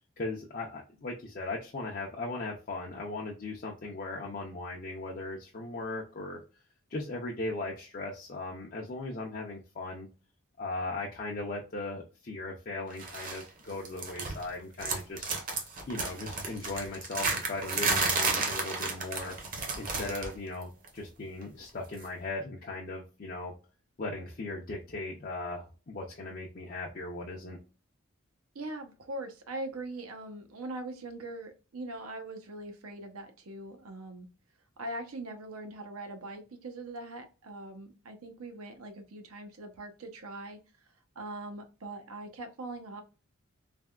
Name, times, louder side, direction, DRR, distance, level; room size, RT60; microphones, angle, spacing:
voice 1, 0.2-6.4 6.9-10.1 10.6-15.3 15.9-19.4 19.8-23.6 24.0-27.6, left 2 dB, 40° left, -2 dB, 0.5 m, -38 dB
sound 1, 13.0-13.4 13.7-14.5 14.8-20.4 20.6-20.9 22.0-22.1, right 4 dB, 40° right, 0.7 m, -32 dB
voice 2, 28.5-34.3 34.8-40.6 41.2-43.0, right 2 dB, 85° right, 6 dB, 0.7 m, -41 dB
3.3 x 2.2 x 2.3 m, 0.33 s
head